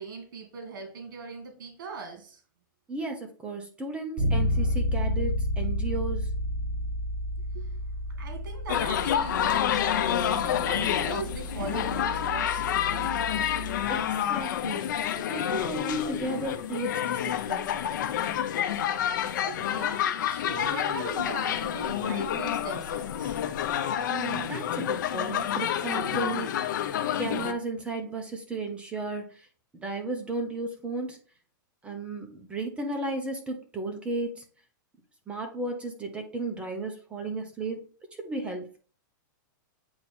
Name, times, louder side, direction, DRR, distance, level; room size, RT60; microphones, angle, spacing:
voice 1, 0.0-2.4 7.5-7.7 8.2-13.2 19.5-23.4, right 4 dB, 65° right, 4 dB, 2.0 m, -40 dB
voice 2, 2.9-6.3 13.9-17.8 24.1-26.5 27.2-29.5 29.7-31.2 31.8-34.4 35.3-37.8 38.2-38.8, right 2 dB, 10° right, 3 dB, 0.9 m, -34 dB
Bass guitar, 4.2-14.0, left 1 dB, 30° right, 3.5 m, -31 dB
Pub in summer, 8.7-27.5, left 10 dB, 65° left, 0.7 m, -28 dB
8.5 x 3.0 x 4.4 m, 0.39 s
supercardioid pair, 155°, 11 cm